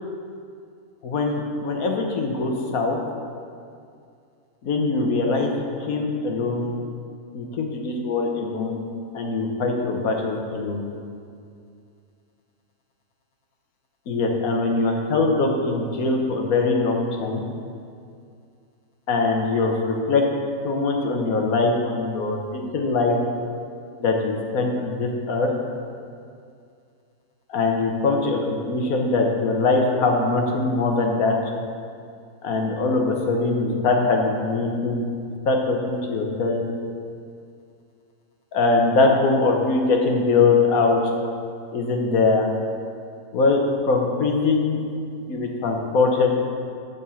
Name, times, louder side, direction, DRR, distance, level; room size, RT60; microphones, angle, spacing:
voice 1, 1.0-3.0 4.6-5.5 5.8-6.7 7.3-8.9 9.1-10.8 14.1-17.4 19.1-20.2 20.6-23.2 24.0-25.5 27.5-31.4 32.4-35.1 35.4-36.7 38.5-41.0 41.7-42.5 43.3-44.8 45.3-46.3, left 3 dB, 75° left, 2 dB, 1.5 m, -22 dB
8.5 x 5.3 x 7.0 m, 2.4 s
omnidirectional pair, 1.5 m